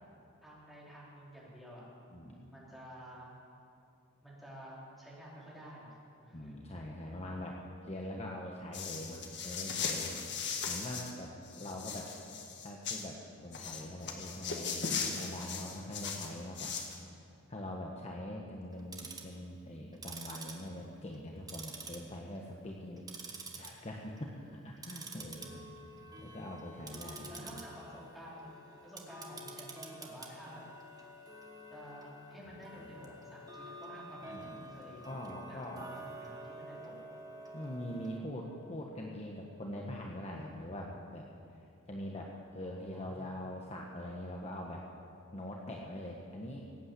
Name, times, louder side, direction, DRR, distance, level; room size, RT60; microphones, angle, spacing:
voice 1, 0.4-1.8 2.5-3.3 4.2-5.9 6.1-6.6 10.4-10.6 25.4-25.9 27.1-28.5 28.8-30.6 31.7-35.9 36.2-37.0 42.6-43.4, equal, ahead, -7 dB, 4.2 m, -51 dB
voice 2, 2.1-2.6 6.3-7.6 7.8-10.1 10.7-11.3 11.6-12.1 12.6-16.8 17.1-17.2 17.5-23.0 23.3-25.7 26.2-27.6 32.8-32.9 34.2-35.9 37.5-41.2 41.9-44.8 45.3-46.6, left 1 dB, 30° left, -1 dB, 1.2 m, -43 dB
sound 1, 8.7-11.1 11.4-13.0 13.5-17.0, left 5 dB, 55° left, 1.6 m, -38 dB
Tick-tock, 18.7-19.4 19.9-21.2 21.5-22.4 22.7-23.7 24.1-24.3 24.8-38.2, right 2 dB, 15° right, 1.4 m, -48 dB
18.0 x 8.8 x 8.1 m, 2.6 s
head